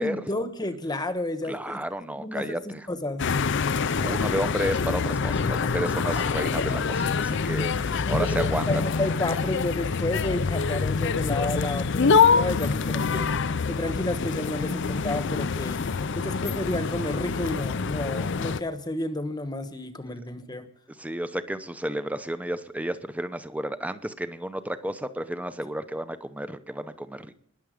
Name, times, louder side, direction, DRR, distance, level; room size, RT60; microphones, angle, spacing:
voice 1, 0.0-1.8 2.1-3.2 8.1-13.3 13.7-15.8 16.2-20.7, left 1 dB, 20° left, 9 dB, 1.1 m, -31 dB
voice 2, 1.4-2.9 4.0-8.8 21.0-27.4, right 1 dB, 5° right, 11 dB, 0.8 m, -32 dB
sound 1, 3.2-18.6, left 5 dB, 60° left, 0.6 m, -25 dB
20.5 x 7.2 x 5.1 m, 0.70 s
head